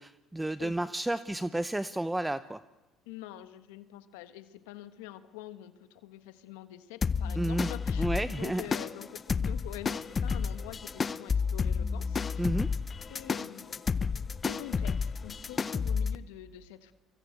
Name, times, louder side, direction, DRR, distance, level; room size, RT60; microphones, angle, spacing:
voice 1, 0.0-2.6 7.3-7.7 8.0-8.6 12.4-12.7, right 1 dB, 10° right, 14 dB, 0.8 m, -31 dB
voice 2, 3.0-12.5 13.1-16.9, left 13 dB, 85° left, 11 dB, 1.3 m, -46 dB
sound 1, 7.0-16.2, left 5 dB, 30° left, 0.8 m, -31 dB
25.0 x 24.0 x 8.2 m, 1.1 s
supercardioid pair, 80°, 0 cm